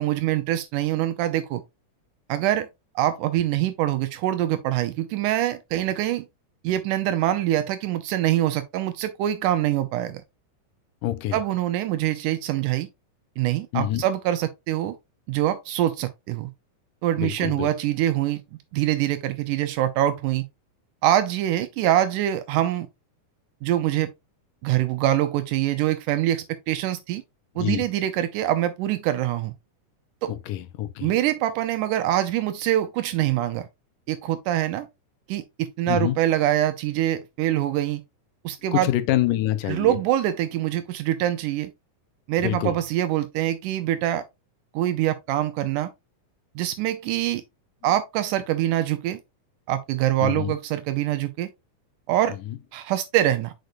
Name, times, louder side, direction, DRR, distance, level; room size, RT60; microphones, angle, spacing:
voice 1, 0.0-1.6 2.3-2.7 3.0-6.3 6.6-10.2 11.3-12.9 13.4-15.0 15.3-16.5 17.0-18.4 18.7-20.4 21.0-22.9 23.6-24.1 24.6-27.2 27.6-29.5 30.2-30.3 31.0-33.7 34.1-34.9 35.3-38.0 38.4-38.9 39.7-41.7 42.3-44.2 44.7-45.9 46.6-47.4 47.8-49.2 49.7-51.5 52.1-52.4 52.7-53.5, right 13 dB, 85° right, 2.1 m, -24 dB
voice 2, 11.0-11.4 13.7-14.1 17.1-17.7 27.6-27.8 30.3-31.1 35.9-36.2 38.7-40.0 42.4-42.8 50.2-50.6 52.5-52.6, left 14 dB, 85° left, 2.4 m, -26 dB
6.5 x 6.5 x 2.5 m
omnidirectional pair, 3.7 m